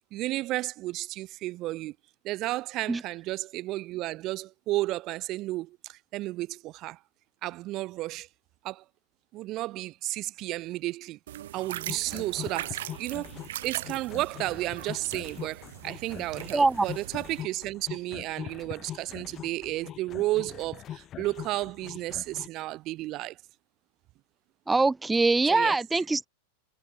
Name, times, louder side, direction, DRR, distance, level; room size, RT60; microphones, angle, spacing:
voice 1, 0.1-1.9 2.2-7.0 7.4-8.3 8.6-8.8 9.3-11.2 11.5-13.3 13.6-23.4 25.5-25.8, right 17 dB, 40° right, 0.8 m, -32 dB
sound 1, 11.3-17.4, right 13 dB, 60° right, 4.8 m, -40 dB
sound 2, 11.9-22.5, left 11 dB, 30° left, 6.7 m, -42 dB
voice 2, 16.5-16.9 24.7-26.3, right 3 dB, 10° right, 0.4 m, -23 dB
figure-of-eight pair, 90°, 0 cm